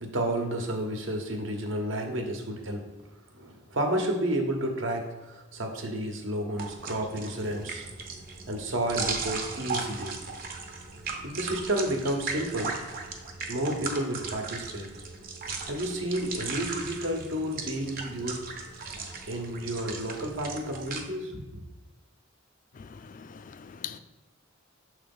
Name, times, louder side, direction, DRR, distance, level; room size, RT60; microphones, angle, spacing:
voice 1, 0.0-2.9 3.3-7.9 8.5-10.2 11.2-12.8 13.5-14.9 15.6-18.5 19.3-21.6, right 1 dB, 75° right, 1.1 m, -31 dB
sound 1, 6.6-21.0, right 4 dB, 50° right, 0.9 m, -37 dB
voice 2, 22.8-24.0, left 8 dB, 40° left, 0.4 m, -42 dB
6.7 x 3.2 x 5.4 m
head